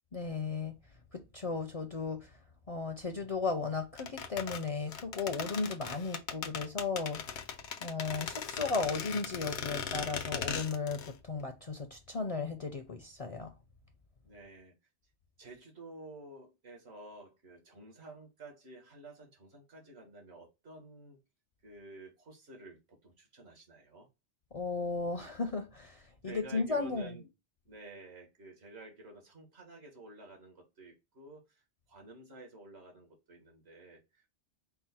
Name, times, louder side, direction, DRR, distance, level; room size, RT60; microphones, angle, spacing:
voice 1, 0.1-0.7 1.1-2.3 2.7-7.2 7.8-13.5 24.5-27.2, left 4 dB, 45° left, 0.5 m, -35 dB
sound 1, 4.0-11.1 11.4-11.5, left 7 dB, 90° left, 1.0 m, -39 dB
voice 2, 14.2-14.7 15.4-21.2 21.6-24.1 26.2-27.3 27.6-34.3, right 2 dB, 70° right, 1.6 m, -51 dB
4.5 x 2.1 x 4.2 m
omnidirectional pair, 1.1 m